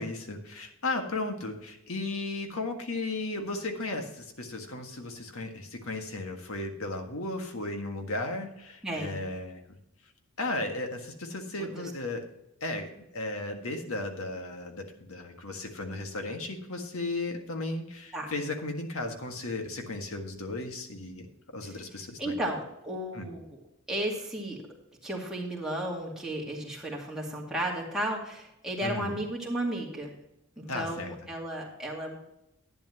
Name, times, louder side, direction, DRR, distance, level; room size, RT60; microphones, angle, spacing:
voice 1, 0.0-9.6 10.4-12.2 12.6-21.3 21.5-22.3 23.1-23.3 28.8-29.2 30.7-31.1, left 2 dB, 70° left, 4 dB, 1.7 m, -35 dB
voice 2, 8.8-9.2 11.6-11.9 18.1-18.3 21.6-21.7 22.2-23.6 23.9-24.6 25.0-30.1 30.6-32.2, right 1 dB, 5° right, -4 dB, 2.3 m, -34 dB
11.0 x 10.0 x 2.9 m, 0.84 s
head